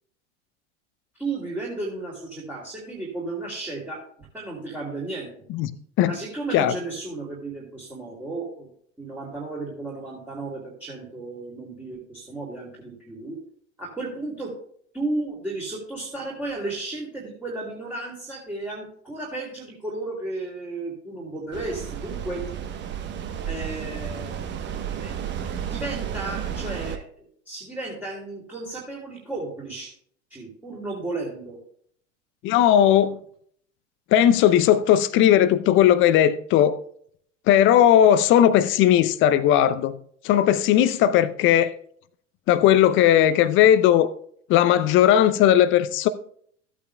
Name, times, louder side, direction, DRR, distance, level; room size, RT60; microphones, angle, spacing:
voice 1, 1.2-5.3 6.0-8.7 9.0-13.4 13.8-14.5 14.9-22.4 23.4-24.4 25.0-25.1 25.7-29.9 30.3-31.6, right 2 dB, 5° right, 2.8 m, -34 dB
sound 1, 21.5-27.0, right 8 dB, 30° right, 1.1 m, -32 dB
voice 2, 32.4-33.2 34.1-36.8 37.5-39.9 40.2-41.7 42.5-44.1 44.5-46.1, left 11 dB, 35° left, 0.6 m, -17 dB
15.0 x 8.6 x 2.3 m
figure-of-eight pair, 80°, 36 cm